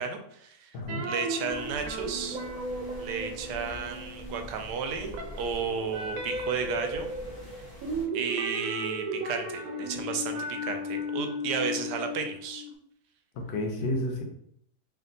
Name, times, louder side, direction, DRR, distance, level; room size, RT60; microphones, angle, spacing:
voice 1, 0.0-0.8 1.0-2.4 3.0-7.1 8.1-12.6, right 6 dB, 85° right, 5 dB, 1.2 m, -33 dB
voice 2, 0.7-1.1 13.3-14.2, left 1 dB, 90° left, 3 dB, 1.4 m, -31 dB
sound 1, 0.9-4.6 4.9-12.7, equal, 65° right, 1.0 m, -35 dB
sound 2, 1.4-8.1, left 1 dB, 25° left, 0.5 m, -46 dB
3.4 x 2.6 x 3.8 m, 0.70 s
omnidirectional pair, 1.8 m